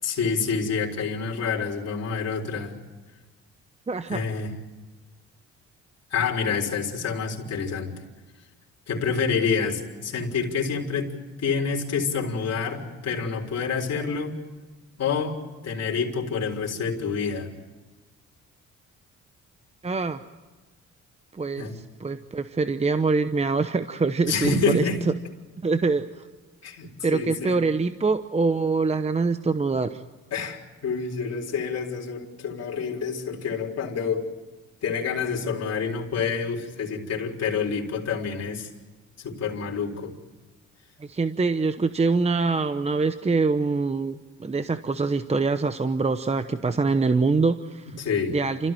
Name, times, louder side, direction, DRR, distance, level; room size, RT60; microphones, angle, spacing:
voice 1, 0.0-2.7 4.1-4.5 6.1-7.9 8.9-11.1 11.4-14.4 15.0-17.5 21.6-21.8 24.3-25.0 26.6-27.6 30.3-34.3 34.8-38.7 39.2-40.1 48.0-48.4, left 5 dB, 55° left, -1 dB, 4.1 m, -28 dB
voice 2, 3.9-4.2 19.8-20.2 21.3-25.1 25.6-26.3 27.0-30.0 41.0-47.9 48.3-48.7, right 4 dB, 20° right, 10 dB, 0.9 m, -24 dB
29.0 x 14.5 x 9.1 m, 1.3 s
cardioid pair, 90°, 30 cm